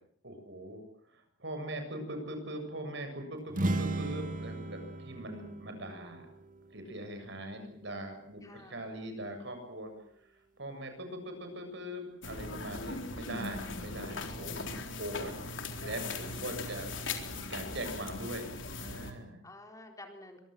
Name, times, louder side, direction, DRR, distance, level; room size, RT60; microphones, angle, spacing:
voice 1, 0.2-0.8 1.1-6.3 6.7-9.9 10.2-10.3 10.6-16.9 17.3-18.5 18.8-19.4, right 1 dB, 65° right, 6 dB, 7.4 m, -41 dB
sound 1, 3.5-7.2, right 1 dB, 45° right, 1.9 m, -36 dB
voice 2, 8.4-8.8 14.2-14.7 19.4-20.4, left 2 dB, 20° left, 4 dB, 4.1 m, -51 dB
sound 2, 12.2-19.1, left 3 dB, 75° left, 4.0 m, -39 dB
25.0 x 23.0 x 7.8 m, 0.66 s
head